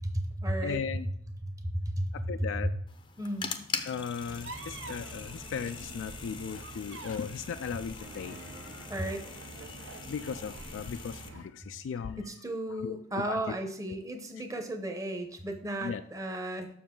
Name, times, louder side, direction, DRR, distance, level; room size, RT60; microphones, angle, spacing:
voice 1, 0.0-0.8 1.8-2.0 3.2-3.5 8.9-9.3 12.2-16.7, right 1 dB, 15° right, 5 dB, 0.9 m, -34 dB
voice 2, 0.6-1.1 2.1-2.7 3.8-9.2 10.1-12.3 12.7-12.9 13.3-13.4 15.8-16.0, left 6 dB, 80° left, 9 dB, 0.3 m, -37 dB
sound 1, 2.9-11.3, left 5 dB, 25° left, 0.5 m, -42 dB
sound 2, 4.2-11.5, right 3 dB, 80° right, 0.7 m, -46 dB
sound 3, 8.0-11.0, right 2 dB, 55° right, 1.5 m, -53 dB
7.0 x 6.3 x 3.7 m, 0.71 s
head